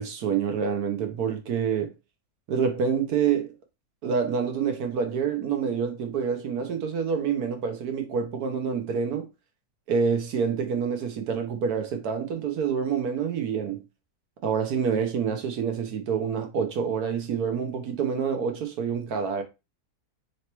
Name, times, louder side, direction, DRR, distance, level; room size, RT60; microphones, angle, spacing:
voice 1, 0.0-1.9 2.5-3.5 4.0-9.3 9.9-13.8 14.4-19.4, right 6 dB, 90° right, 1.4 m, -27 dB
3.9 x 3.3 x 2.9 m
omnidirectional pair, 1.6 m